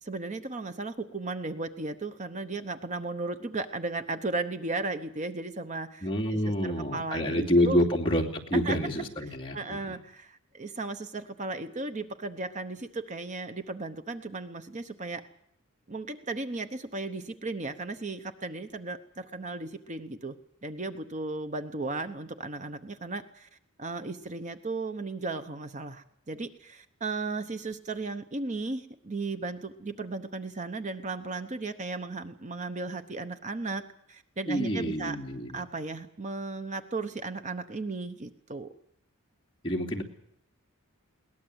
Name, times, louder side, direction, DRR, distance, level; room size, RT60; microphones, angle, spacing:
voice 1, 0.0-7.8 8.5-8.8 9.5-15.2 15.9-20.4 20.6-23.5 23.8-33.8 34.1-35.2 35.5-38.7, right 3 dB, 35° right, 9 dB, 0.9 m, -35 dB
voice 2, 6.0-9.8 34.5-35.6 39.6-40.0, equal, 25° left, -1 dB, 2.7 m, -27 dB
22.0 x 18.5 x 8.0 m, 0.74 s
head